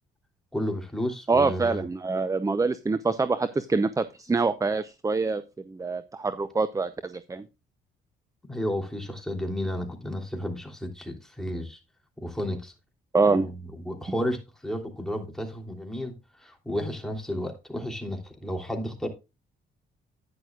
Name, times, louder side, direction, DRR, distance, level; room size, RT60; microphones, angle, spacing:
voice 1, 0.5-1.8 8.5-11.8 12.2-12.7 13.3-16.1 16.4-19.1, equal, ahead, 3.2 m, -32 dB
voice 2, 1.3-7.4 13.1-13.5, right 3 dB, 15° right, 0.6 m, -25 dB
11.0 x 9.7 x 2.4 m
cardioid pair, 90°, 20 cm